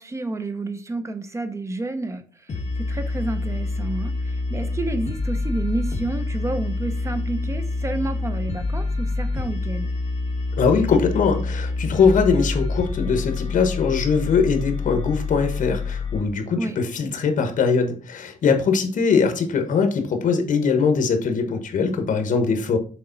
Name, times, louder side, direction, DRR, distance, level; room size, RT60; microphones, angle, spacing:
voice 1, 0.0-9.9 16.6-16.8, right 2 dB, 20° right, 8 dB, 0.7 m, -30 dB
sound 1, 2.5-16.2, left 3 dB, 50° left, 1.2 m, -27 dB
voice 2, 10.6-22.8, left 5 dB, 70° left, 6 dB, 1.2 m, -21 dB
6.8 x 3.8 x 4.0 m, 0.40 s
wide cardioid pair, 150°, 14 cm